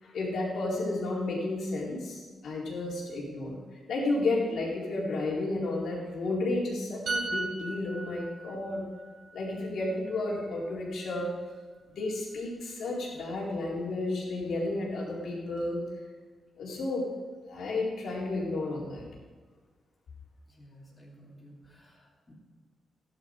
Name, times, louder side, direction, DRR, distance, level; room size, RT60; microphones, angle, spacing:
voice 1, 0.0-3.6 3.9-8.8 9.3-11.3 12.0-15.8 16.6-17.0 17.4-19.0, left 2 dB, 75° left, -4 dB, 4.4 m, -32 dB
sound 1, 7.1-10.7 11.0-11.2, right 3 dB, 75° right, 3.2 m, -37 dB
voice 2, 20.5-22.3, equal, 20° left, -8 dB, 3.4 m, -54 dB
16.5 x 11.0 x 4.9 m, 1.4 s
wide cardioid pair, 160°, 0 cm